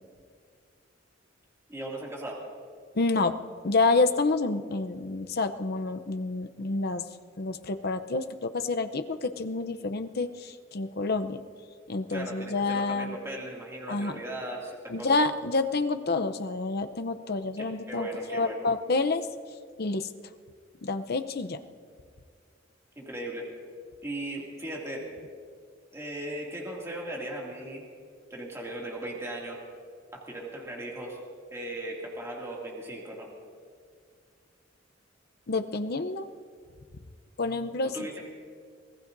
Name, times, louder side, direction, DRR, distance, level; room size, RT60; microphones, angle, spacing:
voice 1, 1.7-2.4 12.1-15.3 17.9-18.6 23.0-23.5 24.0-25.1 25.9-27.8 28.3-29.6 30.1-31.2 31.5-33.3 37.9-38.3, right 1 dB, 15° right, -3 dB, 2.4 m, -37 dB
voice 2, 2.9-3.4 3.6-7.0 7.4-11.4 11.9-13.2 13.9-14.2 14.9-19.3 19.8-20.1 20.8-21.6 35.5-36.3 37.4-37.9, left 3 dB, 55° left, 9 dB, 0.7 m, -28 dB
25.0 x 18.0 x 2.7 m, 2.1 s
head